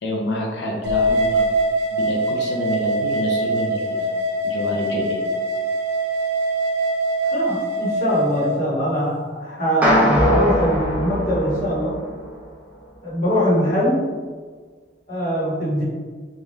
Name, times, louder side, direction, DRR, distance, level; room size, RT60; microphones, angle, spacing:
voice 1, 0.0-1.5 1.9-4.2 4.4-5.2, left 1 dB, 70° left, -1 dB, 0.5 m, -27 dB
sound 1, 0.8-8.5, right 1 dB, 70° right, 0.5 m, -23 dB
voice 2, 7.3-11.9 13.0-14.0 15.1-15.8, equal, 45° left, -11 dB, 1.1 m, -22 dB
sound 2, 9.8-12.3, equal, 10° right, 0.4 m, -20 dB
3.2 x 2.3 x 2.6 m, 1.5 s
head